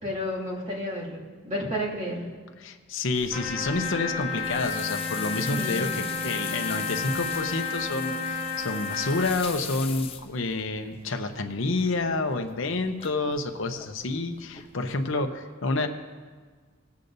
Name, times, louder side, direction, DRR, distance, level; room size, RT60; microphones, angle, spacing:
voice 1, 0.0-2.3 5.4-5.9, equal, 30° right, -6 dB, 2.3 m, -31 dB
voice 2, 2.6-15.9, left 3 dB, 60° left, 5 dB, 0.8 m, -29 dB
sound 1, 3.1-15.2, left 7 dB, 25° left, 0.5 m, -42 dB
Trumpet, 3.3-9.4, left 5 dB, 5° right, 1.1 m, -32 dB
Wind instrument woodwind instrument, 3.4-8.6, right 1 dB, 80° right, 2.3 m, -41 dB
18.5 x 8.3 x 2.7 m, 1.5 s
head